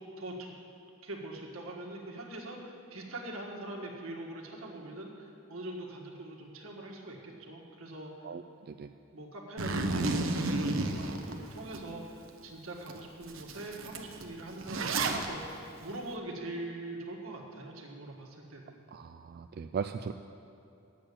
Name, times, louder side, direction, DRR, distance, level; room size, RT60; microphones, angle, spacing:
voice 1, 0.2-0.5 1.0-8.1 9.1-18.8, right 1 dB, 85° right, 0 dB, 1.6 m, -43 dB
voice 2, 8.2-8.9 18.9-20.1, right 6 dB, 50° right, 7 dB, 0.3 m, -38 dB
Zipper (clothing), 9.6-11.8 12.3-12.4 12.9-13.0 13.2-15.3, right 2 dB, 70° right, 0.9 m, -31 dB
8.7 x 7.5 x 8.4 m, 2.8 s
head